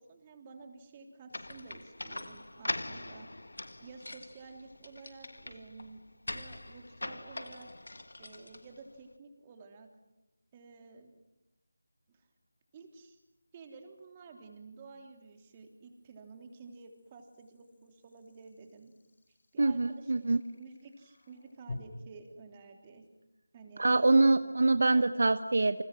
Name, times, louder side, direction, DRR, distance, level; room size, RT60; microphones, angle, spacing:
voice 1, 0.0-3.3 3.8-7.7 8.2-9.9 10.5-11.1 12.1-12.3 12.7-13.2 13.5-18.9 19.5-20.3 20.5-23.0 23.5-24.4 24.9-25.1, right 4 dB, 20° right, 4 dB, 3.2 m, -52 dB
sound 1, 1.3-9.0, left 2 dB, 75° left, 1.3 m, -42 dB
sound 2, 8.1-8.2 11.6-21.8, left 3 dB, 55° left, 4.9 m, -54 dB
voice 2, 19.6-20.4 23.8-25.8, right 2 dB, 60° right, 11 dB, 1.0 m, -25 dB
29.5 x 27.0 x 6.2 m, 0.98 s
figure-of-eight pair, 165°, 0 cm